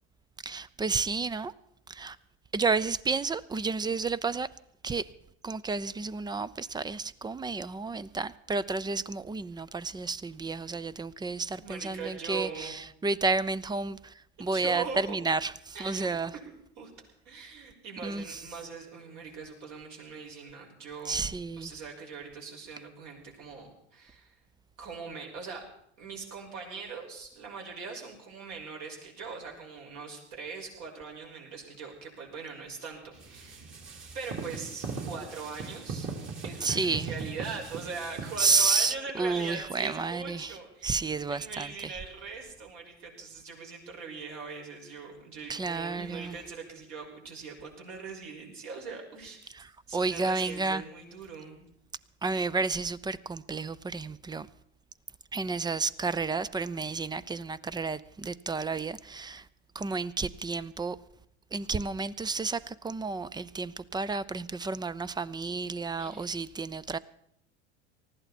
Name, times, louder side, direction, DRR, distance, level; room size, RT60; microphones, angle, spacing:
voice 1, 0.4-1.5 1.9-2.2 2.5-4.5 4.8-5.1 5.4-16.3 18.0-18.4 21.0-21.7 36.6-37.1 38.4-40.6 40.8-42.0 45.5-46.4 49.5-50.8 52.2-54.5 55.3-59.5 59.7-61.0 61.5-67.0, right 4 dB, 15° right, 0.5 m, -31 dB
voice 2, 11.6-12.8 14.4-15.2 15.7-16.5 16.8-16.9 17.3-21.2 21.6-24.3 24.8-25.6 26.0-33.7 34.1-36.1 36.4-49.5 49.9-51.7 65.1-65.2 66.0-66.3, right 5 dB, 55° right, 5.8 m, -41 dB
sound 1, 33.1-38.7, right 4 dB, 35° right, 3.5 m, -39 dB
19.5 x 15.0 x 4.3 m
hypercardioid pair, 95°, 34 cm